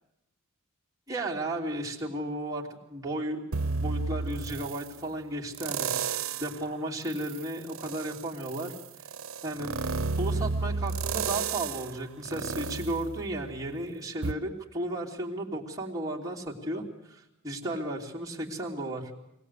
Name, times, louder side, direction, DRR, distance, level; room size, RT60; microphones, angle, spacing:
voice 1, 1.1-3.4 3.8-8.7 9.4-9.8 10.2-19.1, right 1 dB, 15° right, -3 dB, 2.9 m, -34 dB
sound 1, 3.5-4.9 5.5-6.6 7.1-13.8 14.2-14.3, right 4 dB, 90° right, 0.8 m, -32 dB
24.0 x 18.0 x 8.3 m, 0.86 s
head